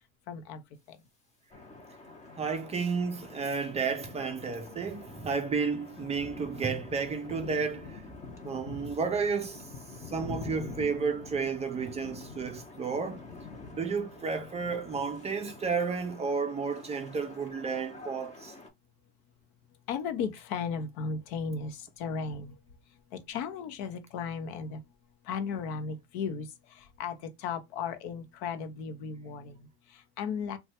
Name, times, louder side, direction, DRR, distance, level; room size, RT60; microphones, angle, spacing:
voice 1, 0.3-1.0 19.9-22.6 23.1-24.8 25.2-30.6, left 6 dB, 70° left, 0.7 m, -36 dB
sound 1, 1.5-18.7, left 3 dB, 20° left, 0.7 m, -46 dB
voice 2, 2.4-8.0 8.4-9.7 10.1-13.2 13.7-18.5, right 5 dB, 20° right, 0.4 m, -32 dB
3.1 x 2.2 x 2.8 m
supercardioid pair, 130°, 33 cm